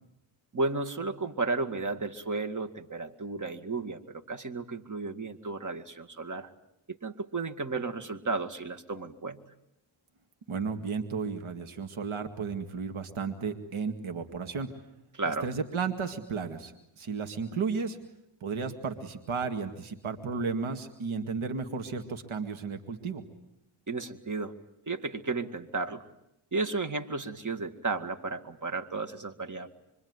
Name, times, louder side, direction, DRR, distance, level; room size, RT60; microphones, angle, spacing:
voice 1, 0.5-6.5 6.9-9.4 15.1-15.5 23.9-24.6 24.9-26.0 26.5-29.7, right 3 dB, 35° right, 7 dB, 2.2 m, -33 dB
voice 2, 10.5-14.7 15.4-18.0 18.4-23.3, right 5 dB, 70° right, 6 dB, 2.2 m, -33 dB
26.0 x 23.5 x 9.7 m, 0.83 s
cardioid pair, 65°, 50 cm